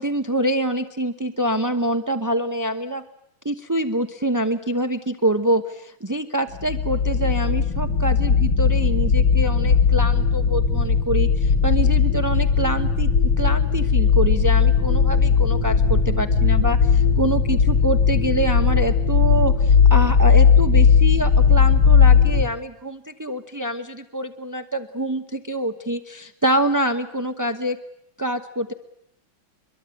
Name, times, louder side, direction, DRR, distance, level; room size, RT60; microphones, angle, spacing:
voice 1, 0.0-3.0 3.4-13.1 13.4-27.8 28.2-28.7, right 1 dB, 15° right, 7 dB, 0.6 m, -25 dB
sound 1, 6.5-22.4, left 6 dB, 70° left, 3.3 m, -17 dB
25.0 x 22.5 x 9.2 m, 0.80 s
omnidirectional pair, 2.2 m